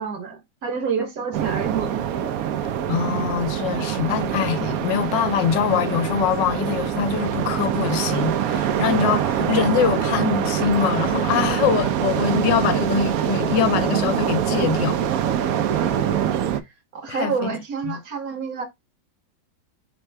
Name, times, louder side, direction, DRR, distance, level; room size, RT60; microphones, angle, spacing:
voice 1, 0.0-2.3 15.7-16.3 16.6-18.6, right 6 dB, 60° right, 1.2 m, -29 dB
sound 1, 1.3-16.6, right 9 dB, 75° right, 0.8 m, -24 dB
voice 2, 2.9-15.0 17.1-17.3 17.9-18.0, left 8 dB, 75° left, 1.2 m, -23 dB
4.5 x 3.4 x 3.2 m
omnidirectional pair, 2.0 m